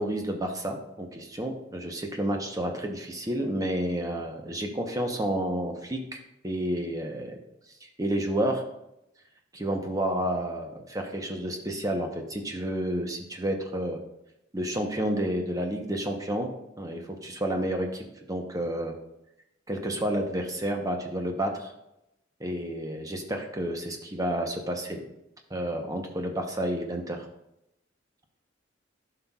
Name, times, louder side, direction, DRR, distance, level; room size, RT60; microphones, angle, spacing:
voice 1, 0.0-6.2 6.4-7.4 7.8-8.6 9.5-14.0 14.5-16.5 16.8-18.9 19.7-21.7 22.4-25.0 25.5-27.3, right 1 dB, 20° right, 3 dB, 0.8 m, -30 dB
11.5 x 5.8 x 2.4 m, 0.86 s
head